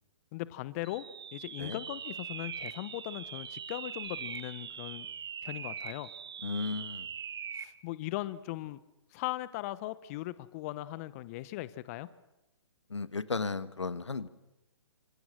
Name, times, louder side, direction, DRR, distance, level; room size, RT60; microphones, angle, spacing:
voice 1, 0.3-1.0 1.3-5.1 5.4-6.1 7.5-8.8 9.1-12.1, left 17 dB, 30° left, 16 dB, 0.8 m, -39 dB
sound 1, 0.8-7.8, right 7 dB, 60° right, 1.3 m, -42 dB
voice 2, 6.4-7.1 12.9-14.3, left 4 dB, 85° left, 14 dB, 1.3 m, -34 dB
26.0 x 24.0 x 6.2 m, 0.97 s
figure-of-eight pair, 135°, 15 cm